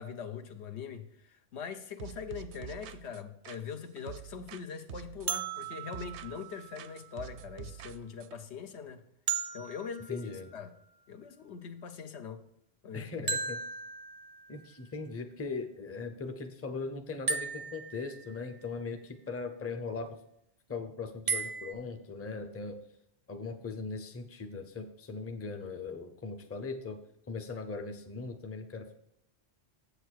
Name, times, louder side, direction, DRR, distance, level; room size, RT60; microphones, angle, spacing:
voice 1, 0.0-9.0 9.5-10.7 11.1-12.4 12.8-13.4, left 7 dB, 75° left, 1.0 m, -42 dB
sound 1, 2.0-4.6 4.9-6.5 6.8-8.4, right 12 dB, 80° right, 0.9 m, -47 dB
sound 2, 5.3-7.2 9.3-11.1 13.3-14.7 17.3-18.6 21.3-21.7, right 6 dB, 45° right, 0.5 m, -37 dB
voice 2, 10.1-10.5 12.9-13.6 14.5-20.2 20.7-22.8 23.3-27.0 27.3-28.9, left 4 dB, 15° left, 0.6 m, -39 dB
7.9 x 6.6 x 4.6 m
omnidirectional pair, 1.1 m